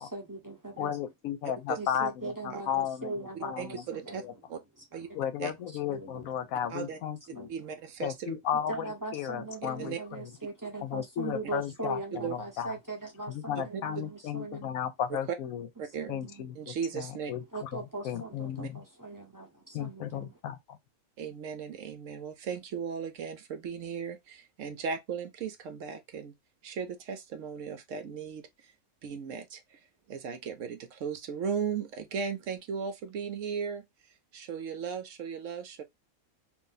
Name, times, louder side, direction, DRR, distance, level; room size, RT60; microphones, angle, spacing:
voice 1, 0.0-0.9 1.8-4.2 5.1-5.2 5.9-6.2 7.3-7.5 8.7-14.8 16.0-16.4 17.5-20.3, right 3 dB, 20° right, 0.6 m, -40 dB
voice 2, 0.8-3.8 4.2-4.3 5.1-7.5 8.0-10.2 10.8-12.7 13.3-15.7 16.1-18.8 19.7-20.8, left 9 dB, 75° left, 1.0 m, -34 dB
voice 3, 3.3-4.2 4.5-4.6 4.9-5.1 5.4-5.5 6.7-7.0 7.5-8.3 9.6-10.0 12.1-12.4 13.7-13.8 15.1-15.2 15.8-16.1 16.6-17.3 18.6-18.7 21.2-26.3 26.6-28.7 29.0-35.8, right 6 dB, 70° right, 0.9 m, -37 dB
2.6 x 2.6 x 3.8 m
omnidirectional pair, 1.5 m